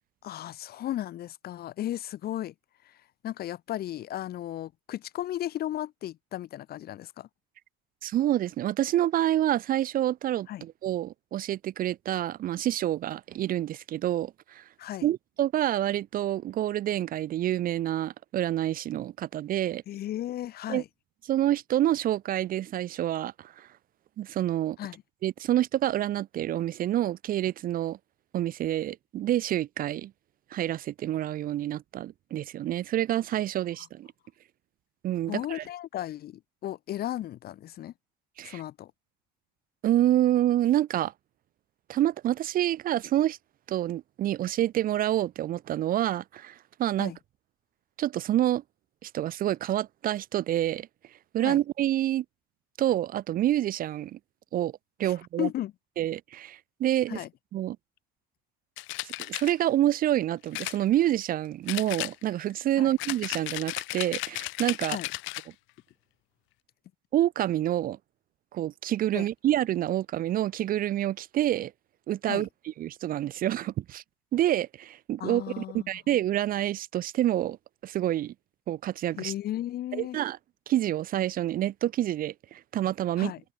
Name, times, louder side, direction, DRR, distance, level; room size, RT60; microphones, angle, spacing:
voice 1, 0.2-2.5 2.8-3.0 3.2-7.3 10.5-10.6 14.8-15.1 19.9-20.9 24.8-25.0 35.3-37.9 38.4-38.9 47.0-47.2 51.4-51.6 55.0-55.7 57.1-57.3 62.8-63.0 64.9-65.1 69.1-69.3 72.2-72.5 75.2-75.9 79.2-80.2 83.2-83.4, left 13 dB, 50° left, 0.7 m, -35 dB
voice 2, 8.0-14.6 15.0-19.8 20.7-20.8 21.3-23.7 24.2-24.8 25.2-28.0 28.3-30.1 30.5-34.1 35.0-35.6 38.4-38.6 39.8-41.1 41.9-43.4 43.7-47.1 48.0-48.6 49.0-50.9 51.3-52.2 52.8-54.2 54.5-54.7 55.0-55.5 56.0-57.2 57.5-57.8 59.0-65.0 67.1-68.0 68.5-71.7 72.1-72.5 72.8-74.0 74.3-77.6 77.8-78.3 78.7-79.3 79.9-80.4 80.7-83.3, right 12 dB, 45° right, 0.5 m, -27 dB
sound 1, 58.8-59.5 60.5-61.3 61.7-62.5 63.0-65.5, left 22 dB, 75° left, 1.1 m, -35 dB
supercardioid pair, 95°, 20 cm